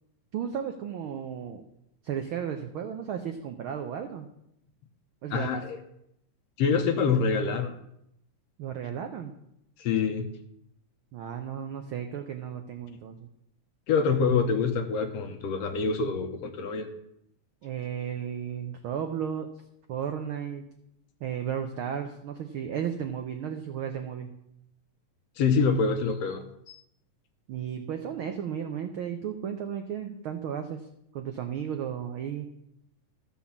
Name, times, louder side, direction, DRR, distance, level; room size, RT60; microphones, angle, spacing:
voice 1, 0.3-1.6 2.0-4.3 5.2-5.6 8.6-9.4 11.1-13.3 17.6-19.5 19.9-20.7 21.2-24.3 27.5-30.9 31.1-32.5, right 8 dB, 80° right, 6 dB, 1.1 m, -34 dB
voice 2, 5.3-5.8 6.6-7.7 9.8-10.3 13.9-16.9 25.4-26.4, left 5 dB, 70° left, 6 dB, 1.8 m, -26 dB
13.5 x 5.5 x 7.2 m, 0.79 s
omnidirectional pair, 3.3 m